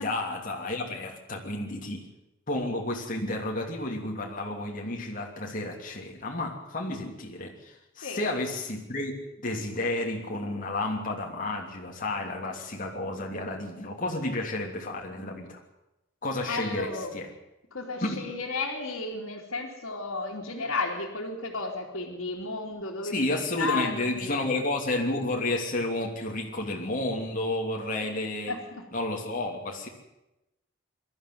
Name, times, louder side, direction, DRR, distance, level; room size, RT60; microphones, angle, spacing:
voice 1, 0.0-2.1 2.5-15.6 16.2-17.3 18.0-18.2 23.1-28.5 28.9-29.9, left 2 dB, 40° left, 0 dB, 3.0 m, -31 dB
voice 2, 16.5-17.2 17.7-24.5 28.5-28.9, left 3 dB, 70° left, -6 dB, 3.2 m, -33 dB
22.0 x 13.0 x 9.6 m, 0.94 s
head